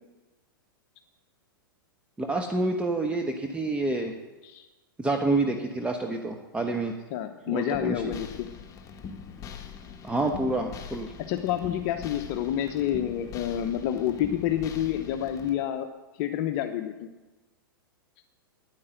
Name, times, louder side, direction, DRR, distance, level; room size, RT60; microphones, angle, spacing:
voice 1, 2.2-4.1 5.0-6.9 7.5-8.1 10.0-11.1, right 2 dB, 10° right, 3 dB, 1.1 m, -28 dB
voice 2, 7.1-8.5 11.3-15.9 16.2-17.1, left 11 dB, 45° left, 7 dB, 0.8 m, -28 dB
sound 1, 7.7-15.5, left 6 dB, 30° left, 1.5 m, -42 dB
9.9 x 9.8 x 7.8 m, 1.2 s
figure-of-eight pair, 100°, 12 cm